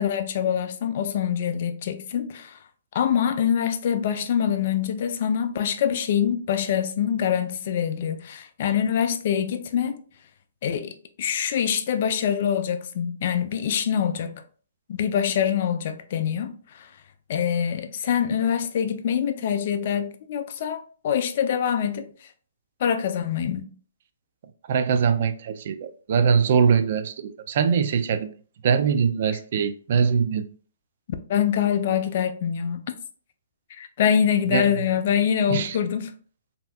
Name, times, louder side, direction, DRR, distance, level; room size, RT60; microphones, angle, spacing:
voice 1, 0.0-2.6 2.9-10.0 10.6-14.3 14.9-16.9 17.3-22.1 22.8-23.7 31.3-32.8 33.8-36.1, left 8 dB, 50° left, 0.4 m, -25 dB
voice 2, 24.7-28.3 28.6-30.4 34.5-34.7 35.5-35.8, right 6 dB, 50° right, 0.3 m, -22 dB
3.3 x 2.7 x 2.3 m
hypercardioid pair, 150°, 0 cm